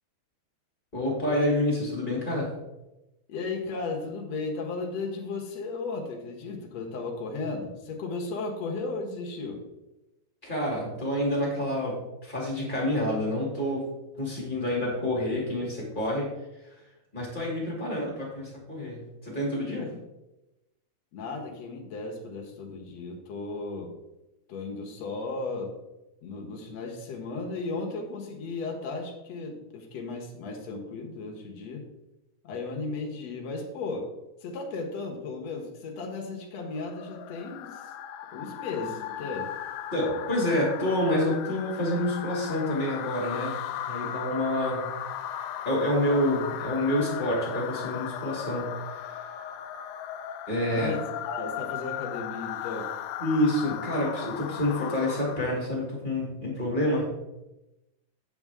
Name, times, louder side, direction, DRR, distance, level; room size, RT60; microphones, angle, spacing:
voice 1, 0.9-2.5 10.4-13.9 14.2-16.3 17.1-19.9 39.9-43.5 43.9-44.9 45.6-49.3 50.5-50.9 53.2-57.0, left 1 dB, 20° left, -4 dB, 1.4 m, -28 dB
voice 2, 3.3-9.6 19.8-19.9 21.1-23.9 24.5-25.7 26.2-31.8 32.4-34.1 34.4-37.9 38.3-39.5 50.7-52.9, left 3 dB, 65° left, 1 dB, 1.7 m, -35 dB
sound 1, 36.7-55.7, left 10 dB, 80° left, 2.5 m, -37 dB
8.4 x 7.9 x 3.6 m, 0.97 s
omnidirectional pair, 4.7 m